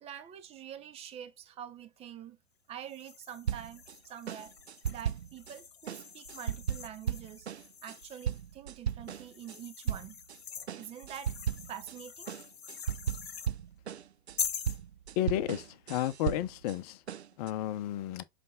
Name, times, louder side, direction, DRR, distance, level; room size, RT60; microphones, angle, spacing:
voice 1, 0.0-2.4 2.7-4.5 4.9-7.5 7.8-10.2 10.8-11.4 11.7-12.3, right 9 dB, 20° right, 0.8 m, -46 dB
sound 1, 2.9-8.4 9.1-13.5 14.4-14.8, left 7 dB, 65° left, 1.1 m, -43 dB
sound 2, 3.5-4.0 4.3-5.5 5.9-9.6 9.9-10.4 10.7-12.0 12.3-16.8 17.1-17.5, right 9 dB, 80° right, 0.5 m, -36 dB
voice 2, 15.2-17.0 17.4-18.2, left 13 dB, 35° left, 0.9 m, -32 dB
7.7 x 3.5 x 3.6 m
figure-of-eight pair, 100°, 32 cm